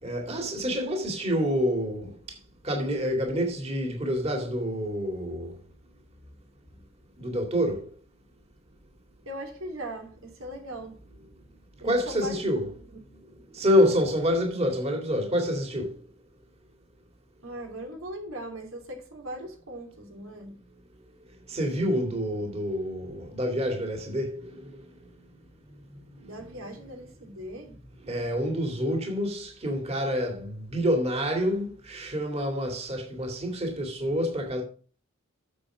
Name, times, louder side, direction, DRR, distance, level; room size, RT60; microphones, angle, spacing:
voice 1, 0.0-2.4 2.6-5.6 7.2-7.9 11.8-12.7 13.5-16.0 21.5-25.1 26.2-26.3 28.0-34.6, equal, 30° right, 2.2 m, -27 dB
voice 2, 9.2-11.4 11.8-12.4 12.8-13.6 17.4-20.6 26.1-27.9 28.3-28.4, right 1 dB, 80° right, 3.1 m, -40 dB
8.6 x 7.1 x 6.0 m
head